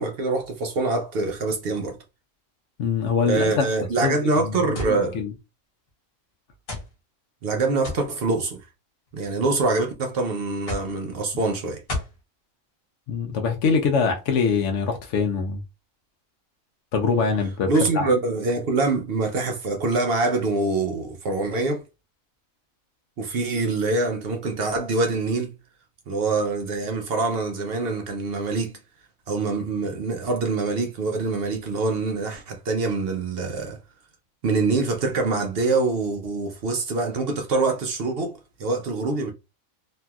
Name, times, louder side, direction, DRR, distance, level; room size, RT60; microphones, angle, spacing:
voice 1, 0.0-2.0 3.3-5.2 7.4-8.6 9.1-11.8 17.7-21.8 23.2-25.5 26.1-28.8 29.3-33.8 34.4-39.3, right 3 dB, 60° right, 0.6 m, -25 dB
voice 2, 2.8-3.6 4.0-5.3 13.1-15.6 16.9-18.1, left 5 dB, 65° left, 0.8 m, -24 dB
sound 1, 4.7-5.0 5.9-6.0 6.7-6.9 7.8-8.1 9.1-9.5 10.7-10.9 11.9-12.2, left 2 dB, 45° left, 1.2 m, -31 dB
3.0 x 2.6 x 2.3 m
omnidirectional pair, 1.4 m